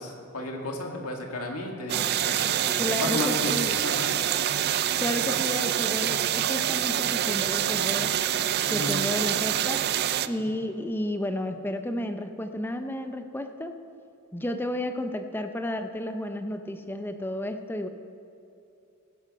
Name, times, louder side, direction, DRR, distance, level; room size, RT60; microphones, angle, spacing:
voice 1, 0.0-3.5 3.8-4.1 8.7-9.0 10.4-10.5, left 2 dB, 75° left, 1 dB, 1.9 m, -33 dB
sound 1, 1.9-10.3, right 11 dB, 45° right, 0.4 m, -26 dB
voice 2, 2.8-3.8 5.0-8.2 8.7-9.9 10.3-13.8 14.3-17.9, left 1 dB, 10° left, 7 dB, 0.6 m, -32 dB
16.5 x 10.5 x 4.2 m, 2.7 s
head